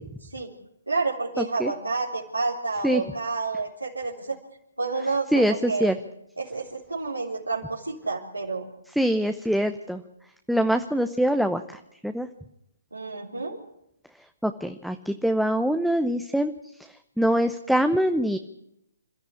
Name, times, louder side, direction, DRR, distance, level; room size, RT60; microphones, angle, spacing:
voice 1, 0.9-4.4 4.8-6.0 6.4-8.7 12.9-13.6, right 3 dB, 85° right, -4 dB, 4.0 m, -29 dB
voice 2, 1.4-1.7 2.8-3.0 5.3-5.9 9.0-10.0 10.5-11.6 12.0-12.3 14.4-16.5 17.2-18.4, equal, ahead, 7 dB, 0.8 m, -23 dB
27.5 x 13.5 x 8.5 m, 0.81 s
figure-of-eight pair, 135°, 0 cm